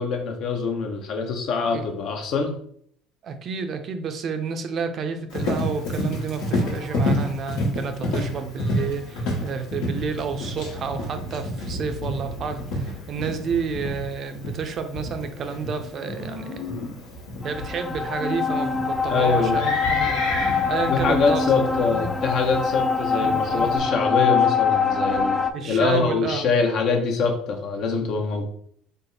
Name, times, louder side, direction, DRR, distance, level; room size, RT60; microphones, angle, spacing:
voice 1, 0.0-2.5 19.1-19.6 20.9-28.5, left 4 dB, 60° left, 4 dB, 0.7 m, -24 dB
voice 2, 3.2-17.0 17.4-20.3 20.7-21.4 21.9-22.1 23.2-23.8 25.5-26.5, right 5 dB, 50° right, 7 dB, 0.5 m, -30 dB
Livestock farm animals working animals, 5.3-23.8, left 1 dB, 80° left, 1.2 m, -30 dB
sound 1, 17.4-25.5, left 5 dB, 5° left, 0.4 m, -24 dB
3.4 x 2.0 x 3.8 m, 0.63 s
supercardioid pair, 85°, 0 cm